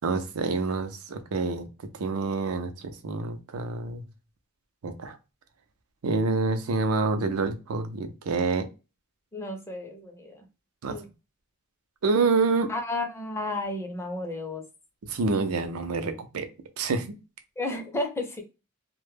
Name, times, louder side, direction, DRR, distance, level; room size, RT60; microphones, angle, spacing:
voice 1, 0.0-1.7 1.9-4.0 4.8-5.2 6.0-8.6 10.8-11.0 12.0-12.7 15.0-16.5 16.8-17.1, right 3 dB, 85° right, 0.5 m, -27 dB
voice 2, 9.3-10.4 10.9-11.0 12.7-14.6 17.6-18.4, left 2 dB, 10° left, 0.5 m, -32 dB
2.1 x 2.0 x 3.1 m
head